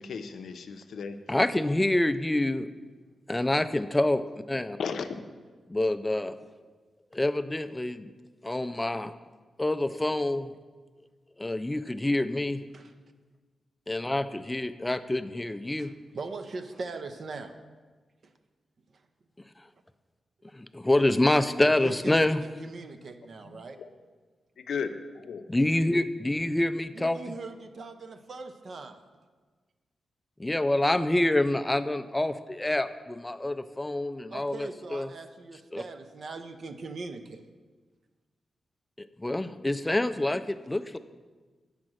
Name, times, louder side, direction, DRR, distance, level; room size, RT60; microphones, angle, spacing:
voice 1, 0.0-1.2 4.8-5.3 23.4-23.5 23.8-23.9 24.7-25.4, left 6 dB, 75° left, 9 dB, 0.5 m, -35 dB
voice 2, 1.3-2.7 3.3-4.2 4.5-4.8 5.7-6.3 7.1-8.1 8.4-9.1 9.6-10.5 11.4-12.6 13.9-15.9 20.5-22.4 25.5-27.2 30.4-35.1 35.7-35.8 39.0-41.0, left 1 dB, 15° left, 11 dB, 0.4 m, -27 dB
voice 3, 15.8-17.6 18.2-18.3 18.9-19.0 21.8-23.8 26.9-29.0 34.3-37.5, right 3 dB, 55° right, 7 dB, 0.5 m, -40 dB
7.5 x 5.2 x 6.1 m, 1.4 s
cardioid pair, 95°, 0 cm